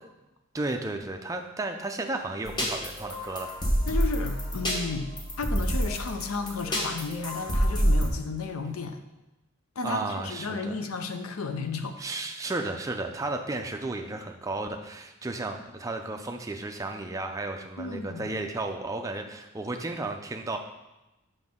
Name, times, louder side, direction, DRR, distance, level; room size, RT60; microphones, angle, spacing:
voice 1, 0.5-3.5 9.8-10.7 12.0-20.6, right 2 dB, 15° right, 4 dB, 0.4 m, -33 dB
sound 1, 2.5-8.1, equal, 20° left, 0.9 m, -28 dB
voice 2, 3.9-9.0 9.8-12.0 17.8-18.3, left 4 dB, 80° left, 7 dB, 0.6 m, -33 dB
6.0 x 5.3 x 3.6 m, 1.0 s
head